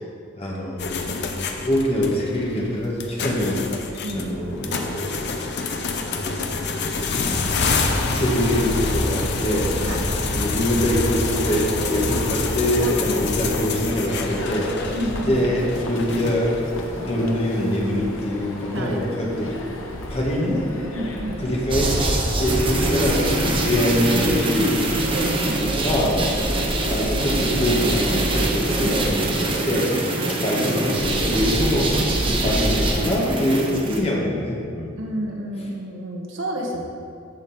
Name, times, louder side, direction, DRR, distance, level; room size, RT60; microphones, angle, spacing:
voice 1, 0.3-3.6 4.1-5.2 6.1-6.4 6.8-7.6 8.1-9.7 10.2-14.7 15.3-16.6 17.0-19.7 20.1-20.7 21.4-22.0 22.4-23.3 23.6-24.8 25.5-26.2 26.8-30.1 30.4-32.0 32.4-35.0, equal, 30° left, -3 dB, 1.7 m, -24 dB
sound 1, 0.8-16.7, left 4 dB, 60° left, 0.8 m, -27 dB
sound 2, 4.5-23.7, left 1 dB, 75° left, 1.2 m, -34 dB
voice 2, 9.5-10.1 13.1-13.3 14.9-15.4 18.7-19.0 20.9-21.5 23.4-23.6 25.1-26.4 28.8-28.9 30.2-30.4 32.3-32.5 35.0-36.8, right 1 dB, 70° right, 0 dB, 1.4 m, -31 dB
sound 3, 21.7-34.0, right 1 dB, 25° right, 1.1 m, -23 dB
14.0 x 5.1 x 4.4 m, 2.3 s
head